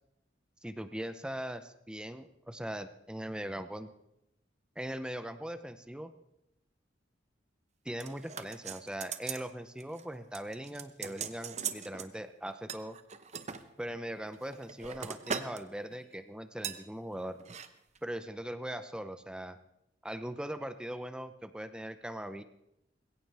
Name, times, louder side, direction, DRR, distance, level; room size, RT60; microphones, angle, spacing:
voice 1, 0.6-3.9 4.8-6.1 7.8-13.0 13.8-17.4 18.0-19.6 20.0-22.4, right 1 dB, 5° right, 10 dB, 0.6 m, -40 dB
sound 1, 8.0-9.5 9.8-10.1 10.3-12.1 12.7-13.6 14.3-15.6 15.9-16.1 16.6-16.8 17.4-17.7 18.0-18.1, right 6 dB, 40° right, 0.8 m, -40 dB
20.5 x 16.5 x 3.4 m, 0.83 s
head